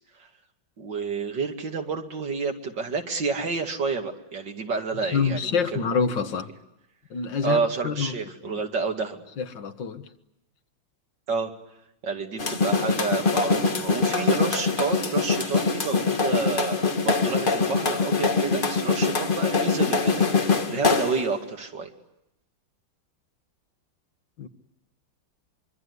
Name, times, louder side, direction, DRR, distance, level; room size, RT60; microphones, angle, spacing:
voice 1, 0.8-5.8 7.4-9.2 11.3-11.5 12.0-21.9, right 4 dB, 70° right, 4 dB, 2.9 m, -29 dB
voice 2, 5.0-6.5 7.1-8.2 8.4-8.6 9.4-10.1 24.4-24.5, left 6 dB, 75° left, 8 dB, 2.1 m, -27 dB
sound 1, 12.4-21.3, left 4 dB, 30° left, 1.4 m, -23 dB
25.0 x 24.5 x 9.7 m, 0.86 s
omnidirectional pair, 2.0 m